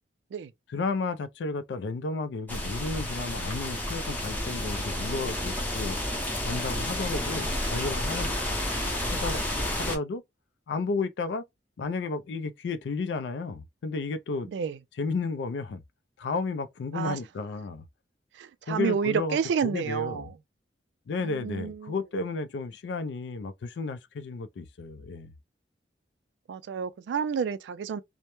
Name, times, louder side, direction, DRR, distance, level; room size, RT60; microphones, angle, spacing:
voice 1, 0.7-6.0 6.4-9.4 9.7-10.2 10.7-11.4 11.8-14.5 15.0-15.8 16.2-17.8 18.7-19.4 19.6-20.3 21.1-25.3, left 4 dB, 80° left, 0.4 m, -33 dB
sound 1, 2.5-10.0, left 1 dB, 10° left, 0.6 m, -31 dB
voice 2, 14.5-14.8 16.9-17.2 18.3-20.4 21.2-21.9 26.5-28.0, right 6 dB, 80° right, 0.3 m, -30 dB
2.1 x 2.0 x 2.9 m
head